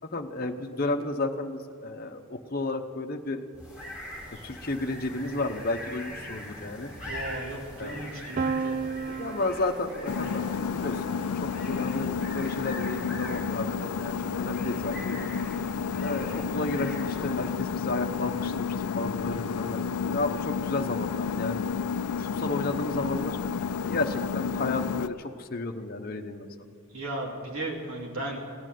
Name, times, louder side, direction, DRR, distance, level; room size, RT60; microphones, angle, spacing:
voice 1, 0.0-3.4 4.4-6.9 7.8-8.1 8.8-8.9 9.2-15.3 16.0-21.6 22.2-23.4 23.8-26.5, left 2 dB, 40° left, 4 dB, 0.8 m, -32 dB
sound 1, 3.5-17.8, left 1 dB, 5° right, 4.2 m, -43 dB
voice 2, 7.0-8.7 26.9-28.4, right 2 dB, 75° right, -1 dB, 2.7 m, -35 dB
Piano, 8.4-14.1, right 5 dB, 35° right, 0.4 m, -36 dB
sound 2, 10.1-25.1, left 6 dB, 85° left, 0.4 m, -31 dB
16.0 x 8.9 x 9.1 m, 2.4 s
head